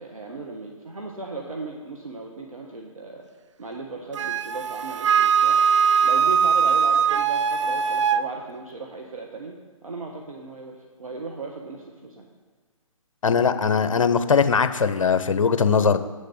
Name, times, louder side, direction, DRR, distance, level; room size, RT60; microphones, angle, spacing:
voice 1, 0.0-3.2 3.6-5.6 6.0-9.6 9.8-12.3, right 3 dB, 85° right, 0 dB, 1.4 m, -37 dB
Wind instrument woodwind instrument, 4.1-8.2, right 7 dB, 60° right, 0.5 m, -20 dB
voice 2, 13.2-16.0, left 6 dB, 70° left, 11 dB, 0.8 m, -20 dB
8.3 x 6.7 x 6.5 m, 1.3 s
figure-of-eight pair, 135°, 17 cm